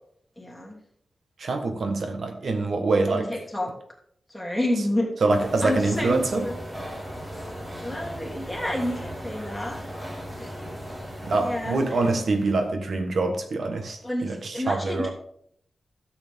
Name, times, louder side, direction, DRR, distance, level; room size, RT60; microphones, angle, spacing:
voice 1, 0.4-0.8 3.1-3.7 4.3-5.1 5.6-6.5 7.8-9.8 10.4-10.7 11.4-12.0 14.0-15.1, left 1 dB, 5° left, -2 dB, 2.9 m, -30 dB
voice 2, 1.4-3.3 5.2-6.5 11.2-15.1, right 3 dB, 70° right, 5 dB, 1.3 m, -25 dB
sound 1, 5.3-12.7, equal, 20° right, 2.6 m, -37 dB
12.5 x 8.0 x 3.6 m, 0.68 s
wide cardioid pair, 110°, 0 cm